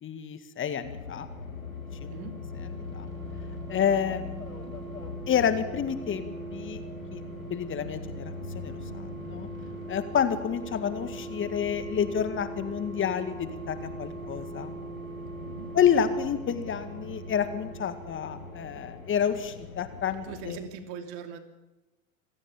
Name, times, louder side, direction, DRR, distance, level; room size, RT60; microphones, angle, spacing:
voice 1, 0.0-1.3 2.0-2.1 2.9-3.1 3.7-4.5 5.3-6.8 7.1-7.2 7.5-9.5 9.9-14.7 15.7-20.6, left 8 dB, 30° left, 11 dB, 2.0 m, -29 dB
sound 1, 0.8-20.7, left 5 dB, 85° left, 1.9 m, -42 dB
sound 2, 1.2-19.5 19.8-19.9, right 5 dB, 80° right, 2.5 m, -42 dB
voice 2, 2.1-2.4 15.4-15.7 20.2-21.4, right 6 dB, 55° right, 8 dB, 2.9 m, -41 dB
27.0 x 16.5 x 7.2 m, 1.0 s
figure-of-eight pair, 80°, 40 cm